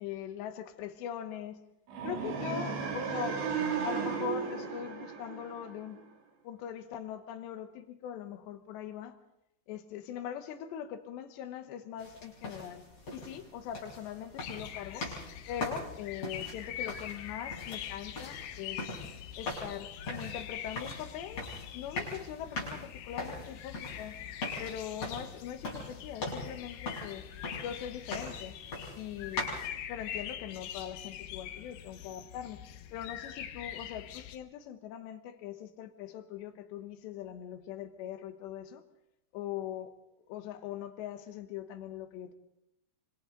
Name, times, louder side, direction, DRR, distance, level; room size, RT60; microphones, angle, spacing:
voice 1, 0.0-1.6 2.0-3.4 3.8-6.0 6.5-9.2 9.7-12.8 13.1-15.1 15.5-19.0 19.4-21.5 21.7-24.2 24.6-27.3 27.6-28.6 29.0-29.6 29.9-32.6 32.9-38.8 39.3-39.9 40.3-42.3, left 10 dB, 85° left, 9 dB, 3.5 m, -41 dB
sound 1, 1.9-6.0, right 6 dB, 85° right, 5.1 m, -35 dB
sound 2, 12.0-29.7, left 2 dB, 35° left, 7.4 m, -42 dB
sound 3, 14.4-34.4, left 10 dB, 70° left, 2.6 m, -44 dB
26.5 x 25.5 x 3.9 m, 0.83 s
omnidirectional pair, 4.8 m